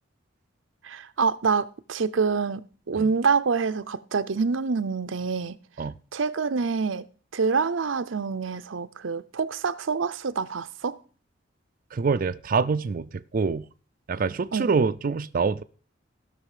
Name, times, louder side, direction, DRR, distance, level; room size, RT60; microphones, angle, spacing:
voice 1, 0.8-5.6 6.1-7.1 7.3-11.0 14.5-14.7, right 5 dB, 85° right, 0.6 m, -26 dB
voice 2, 11.9-13.7 14.1-15.6, right 5 dB, 45° right, 0.4 m, -25 dB
16.0 x 6.2 x 4.9 m
head